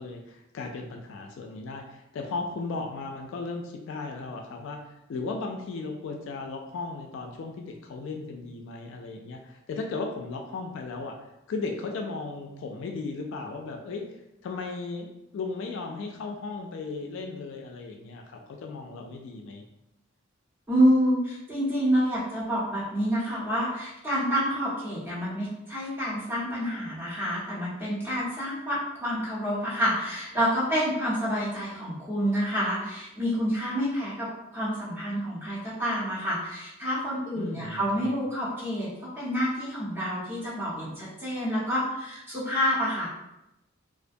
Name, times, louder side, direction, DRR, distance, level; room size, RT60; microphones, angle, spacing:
voice 1, 0.0-4.8 5.1-11.2 11.5-14.0 14.4-19.6 37.4-38.1, left 3 dB, 65° left, 3 dB, 0.3 m, -36 dB
voice 2, 20.7-38.9 39.2-43.1, equal, 10° right, -9 dB, 0.9 m, -28 dB
2.4 x 2.1 x 2.6 m, 0.90 s
head